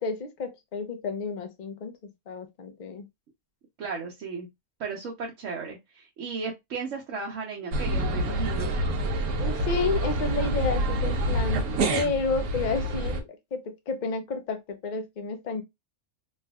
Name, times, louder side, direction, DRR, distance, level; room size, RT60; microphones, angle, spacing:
voice 1, 0.0-2.0 2.3-3.1 9.3-15.6, left 4 dB, 55° left, 0.5 m, -31 dB
voice 2, 3.8-4.5 4.8-8.7, right 4 dB, 65° right, 1.0 m, -35 dB
sound 1, 7.7-13.2, right 1 dB, 90° right, 1.2 m, -27 dB
3.2 x 2.6 x 2.2 m
omnidirectional pair, 1.5 m